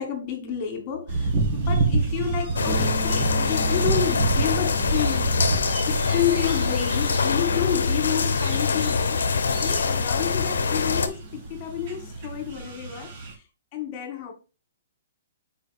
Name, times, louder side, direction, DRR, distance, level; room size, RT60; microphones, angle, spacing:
voice 1, 0.0-9.2 9.6-13.1 13.7-14.3, left 10 dB, 40° left, 2.0 m, -30 dB
sound 1, 1.1-13.3, right 3 dB, 50° right, 1.9 m, -29 dB
sound 2, 2.6-11.1, left 4 dB, 75° left, 0.8 m, -24 dB
Bass guitar, 2.7-5.8, equal, 5° right, 1.1 m, -39 dB
7.0 x 4.8 x 3.5 m
hypercardioid pair, 125°, 0 cm